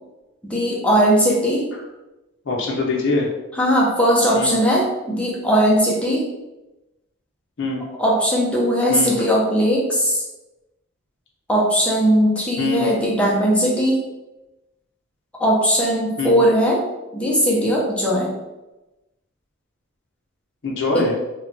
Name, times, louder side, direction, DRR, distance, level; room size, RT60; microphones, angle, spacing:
voice 1, 0.4-1.7 3.6-6.3 8.0-10.2 11.5-14.0 15.4-16.8 17.1-18.3 20.9-21.1, equal, 5° left, -4 dB, 0.5 m, -18 dB
voice 2, 2.4-3.3 4.3-4.6 7.6-7.8 8.9-9.2 12.6-13.0 16.2-16.4 20.6-21.1, left 2 dB, 60° left, -1 dB, 0.6 m, -23 dB
2.3 x 2.1 x 3.8 m, 1.0 s
head